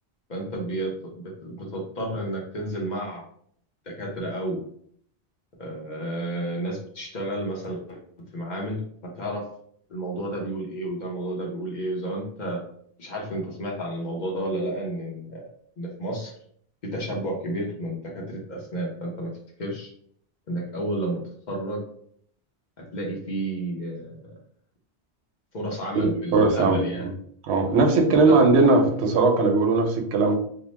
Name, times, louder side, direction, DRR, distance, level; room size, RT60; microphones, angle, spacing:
voice 1, 0.3-3.2 3.9-4.6 5.6-8.0 8.3-9.5 9.9-12.6 13.0-15.4 15.8-16.3 16.8-19.3 19.6-19.9 20.5-21.2 21.5-21.8 22.9-24.3 25.5-27.1 28.2-28.4, right 1 dB, 50° left, -2 dB, 0.8 m, -31 dB
voice 2, 25.9-26.8 27.4-30.4, right 3 dB, 85° right, 3 dB, 0.9 m, -19 dB
2.8 x 2.0 x 3.1 m, 0.63 s
omnidirectional pair, 1.1 m